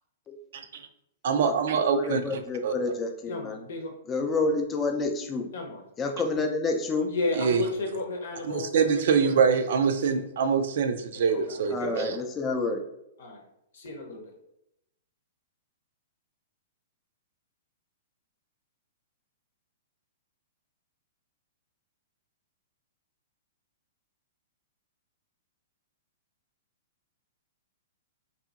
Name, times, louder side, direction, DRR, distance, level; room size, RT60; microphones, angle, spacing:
voice 1, 1.2-2.7 7.4-8.0 8.5-12.2, right 6 dB, 65° right, 7 dB, 0.3 m, -25 dB
voice 2, 1.8-3.6 4.1-5.5 6.0-7.1 11.7-12.8, left 3 dB, 20° left, 4 dB, 0.4 m, -29 dB
voice 3, 3.3-4.0 5.5-5.8 7.1-9.4 9.7-10.2 11.1-11.9 13.2-13.4 13.7-14.3, left 2 dB, 75° left, 2 dB, 0.8 m, -34 dB
2.7 x 2.7 x 2.4 m, 0.80 s
hypercardioid pair, 130°, 0 cm